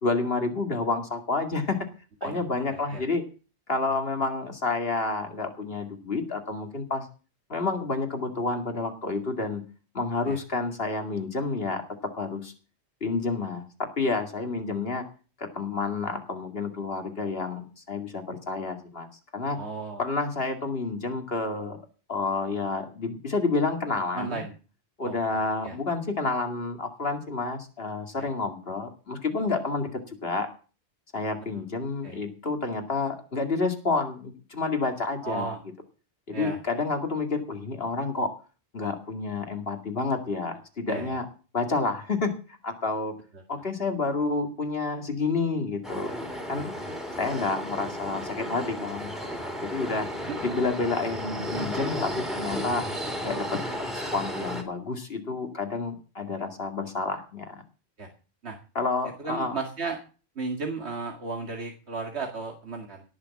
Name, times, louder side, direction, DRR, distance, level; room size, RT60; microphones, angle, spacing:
voice 1, 0.0-1.9 2.2-3.2 3.7-7.1 7.5-9.6 9.9-11.8 12.2-12.5 13.0-15.0 15.4-19.1 19.3-19.6 20.0-21.8 22.1-24.4 25.0-30.5 31.1-35.6 36.3-38.3 38.7-41.3 41.5-42.4 42.6-43.1 43.5-46.2 46.5-46.7 47.2-50.1 50.4-52.8 53.2-53.6 53.9-57.6 58.7-59.6, left 3 dB, 65° left, 5 dB, 2.5 m, -29 dB
voice 2, 2.7-3.0 10.3-10.4 19.6-20.0 24.2-24.5 25.1-25.2 25.6-25.8 28.2-28.3 32.0-32.2 35.2-35.6 36.3-36.6 40.9-41.2 46.6-46.7 50.3-50.4 58.0-58.1 58.4-58.6 59.2-60.0 60.4-63.0, right 4 dB, 85° right, 3 dB, 2.3 m, -34 dB
sound 1, 45.8-54.6, equal, ahead, 3.2 m, -34 dB
18.0 x 6.8 x 7.2 m, 0.36 s
omnidirectional pair, 1.1 m